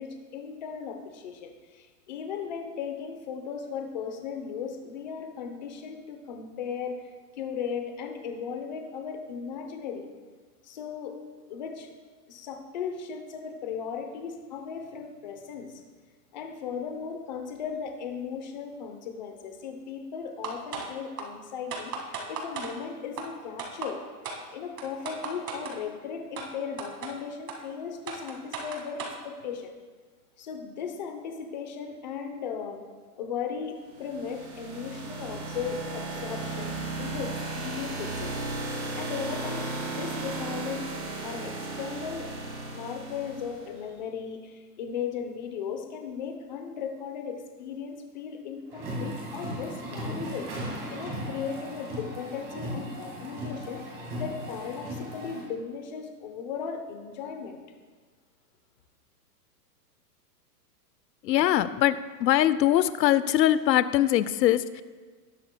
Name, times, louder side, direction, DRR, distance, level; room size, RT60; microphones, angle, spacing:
voice 1, 0.0-7.0 7.4-10.0 10.6-11.2 11.5-11.9 12.3-15.8 16.3-24.0 24.5-29.7 30.4-32.8 33.2-38.3 39.0-40.9 41.2-42.3 42.7-53.8 54.2-57.6, left 6 dB, 30° left, 5 dB, 0.7 m, -37 dB
sound 1, 20.4-20.9 21.2-21.3 21.7-22.7 23.2-23.3 23.6-23.9 24.2-24.4 24.8-25.8 26.4-26.5 26.8-27.1 27.5-27.6 28.1-29.2, right 5 dB, 70° right, 2.1 m, -35 dB
sound 2, 33.9-43.7, right 2 dB, 45° right, 3.1 m, -35 dB
sound 3, 48.7-55.4, equal, 20° right, 2.0 m, -36 dB
voice 2, 61.2-64.8, left 12 dB, 90° left, 15 dB, 0.7 m, -22 dB
18.5 x 7.7 x 2.2 m, 1.4 s
supercardioid pair, 180°, 48 cm